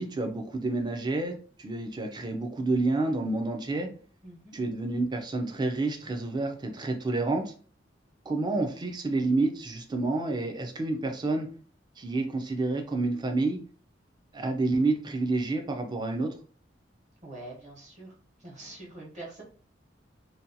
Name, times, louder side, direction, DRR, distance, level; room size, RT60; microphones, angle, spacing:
voice 1, 0.0-3.9 4.5-7.5 8.3-11.5 12.0-13.6 14.3-16.3, right 2 dB, 25° right, 4 dB, 0.4 m, -29 dB
voice 2, 4.2-4.6 17.2-19.4, right 2 dB, 40° right, -3 dB, 1.1 m, -45 dB
2.7 x 2.2 x 2.6 m, 0.42 s
head